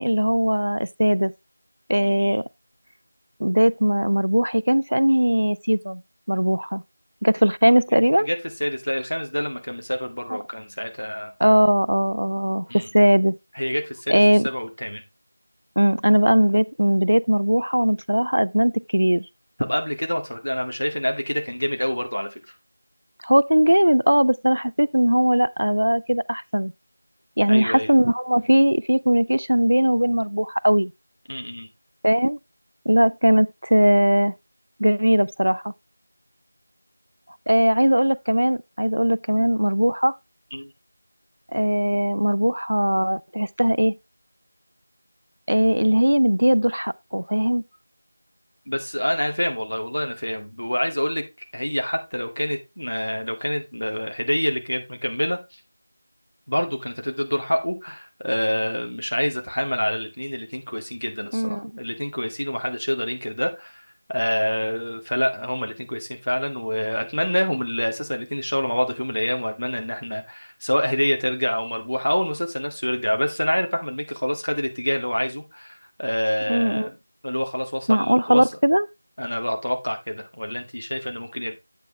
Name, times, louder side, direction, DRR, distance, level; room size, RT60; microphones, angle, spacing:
voice 1, 0.0-1.3 1.9-2.4 3.4-6.0 6.3-6.8 7.2-8.3 11.4-13.3 14.1-14.5 15.8-19.3 23.2-26.7 27.4-30.9 32.0-32.4 32.9-34.3 34.8-35.7 37.5-40.2 41.5-43.9 45.5-47.6 61.3-61.7 76.5-76.9 77.9-78.9, equal, 80° right, 0.4 m, -19 dB
voice 2, 1.9-2.4 7.9-8.0 8.3-11.3 12.7-12.9 13.6-14.1 14.4-15.0 19.7-22.4 27.5-27.9 31.3-31.7 40.5-40.7 48.7-51.2 51.5-55.4 56.5-63.8 64.1-76.9 77.2-78.4 79.2-81.5, equal, 80° left, 2.1 m, -26 dB
8.2 x 6.4 x 3.1 m
figure-of-eight pair, 170°, 0 cm